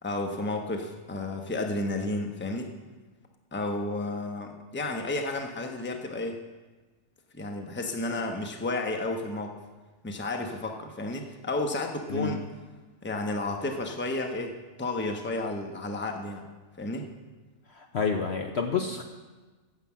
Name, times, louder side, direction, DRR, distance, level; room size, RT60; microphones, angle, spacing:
voice 1, 0.0-2.7 3.5-6.4 7.3-9.6 10.0-12.4 13.0-16.5 16.8-17.1, left 2 dB, 10° left, 3 dB, 0.8 m, -32 dB
voice 2, 17.7-19.0, left 5 dB, 55° left, 4 dB, 0.9 m, -29 dB
9.6 x 7.7 x 7.4 m, 1.3 s
omnidirectional pair, 1.6 m